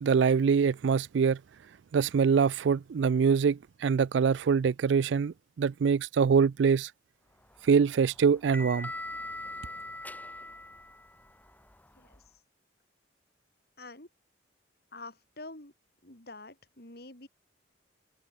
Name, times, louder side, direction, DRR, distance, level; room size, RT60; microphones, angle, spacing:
voice 1, 0.0-1.4 1.9-6.9 7.7-8.9, right 6 dB, 70° right, 0.4 m, -24 dB
sound 1, 7.4-12.3, left 2 dB, 10° left, 4.7 m, -42 dB
voice 2, 13.8-14.1 14.9-15.7 16.0-17.3, left 2 dB, 55° left, 4.2 m, -47 dB
head